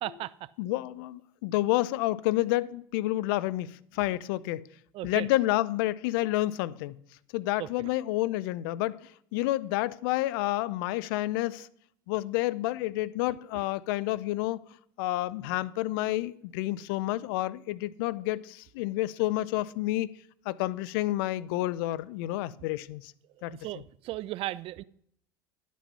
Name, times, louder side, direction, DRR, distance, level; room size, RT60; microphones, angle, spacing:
voice 1, 0.0-0.5 4.9-5.3 7.6-7.9 13.5-13.6 23.3-24.8, right 15 dB, 50° right, 0.4 m, -36 dB
voice 2, 0.6-4.6 5.0-7.0 7.3-11.7 12.1-14.6 15.0-20.1 20.5-23.1 23.4-23.6, left 16 dB, 70° left, 0.4 m, -29 dB
11.0 x 6.2 x 5.4 m
hypercardioid pair, 80°, 12 cm